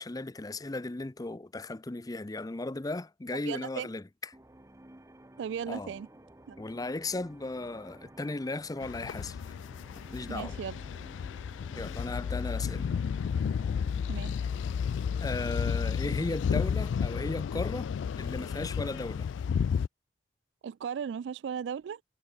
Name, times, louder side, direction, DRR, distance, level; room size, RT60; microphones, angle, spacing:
voice 1, 0.0-4.0 5.7-5.9 6.6-9.6 10.1-10.6 11.7-12.9 15.2-17.9 18.2-19.3, left 2 dB, 20° left, 0.5 m, -36 dB
voice 2, 3.5-3.9 5.4-6.1 6.5-6.6 10.3-10.8 14.1-14.3 20.6-22.0, right 7 dB, 70° right, 0.3 m, -36 dB
sound 1, 4.3-17.6, right 1 dB, 15° right, 1.0 m, -54 dB
sound 2, 8.8-19.9, left 7 dB, 80° left, 0.3 m, -32 dB
head